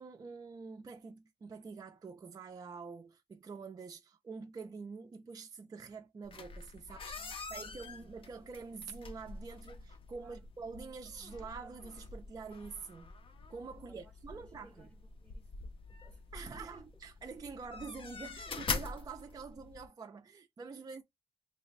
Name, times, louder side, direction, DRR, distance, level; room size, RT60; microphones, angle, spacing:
voice 1, 0.0-13.1 13.5-14.9 16.3-21.0, right 5 dB, 30° right, 0.4 m, -46 dB
sound 1, 6.2-19.9, left 4 dB, 45° left, 0.5 m, -45 dB
voice 2, 7.1-8.6 10.2-10.4 13.9-16.9, equal, 5° left, 0.7 m, -63 dB
3.2 x 2.1 x 3.9 m
wide cardioid pair, 160°, 13 cm